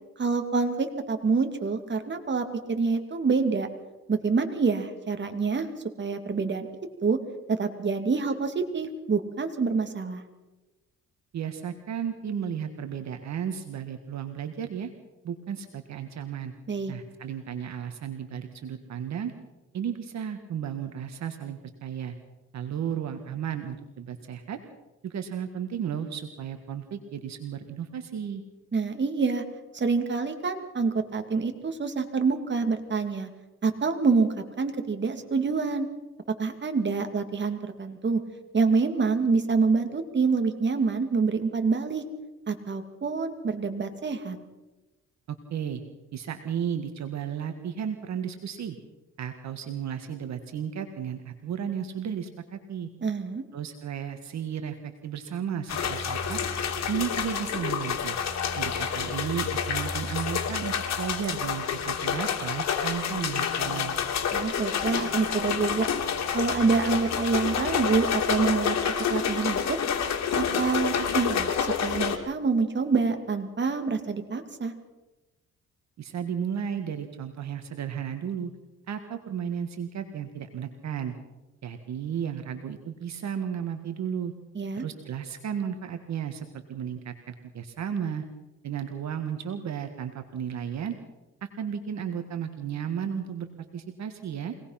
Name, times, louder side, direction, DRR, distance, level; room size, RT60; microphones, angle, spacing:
voice 1, 0.2-3.7 4.1-5.7 6.0-6.7 7.0-7.2 7.5-10.2 16.7-17.0 28.7-29.4 29.7-33.3 33.6-34.3 34.6-35.9 36.4-38.2 38.5-42.0 42.5-44.4 53.0-53.4 64.3-65.9 66.3-68.8 69.1-69.8 70.3-71.5 71.8-74.7 84.5-84.8, right 4 dB, 35° right, 6 dB, 2.6 m, -26 dB
voice 2, 11.3-14.9 15.2-16.5 16.9-19.3 19.7-22.1 22.5-24.6 25.0-28.4 45.3-45.8 46.1-48.8 49.2-52.9 53.5-56.4 56.9-58.2 58.6-64.0 76.0-78.5 78.9-81.1 81.6-84.3 84.8-88.2 88.6-91.0 91.6-93.5 93.7-94.6, right 8 dB, 65° right, 7 dB, 1.8 m, -34 dB
sound 1, 55.7-72.2, left 7 dB, 60° left, 3.0 m, -28 dB
24.5 x 19.0 x 5.9 m, 1.1 s
cardioid pair, 90°, 30 cm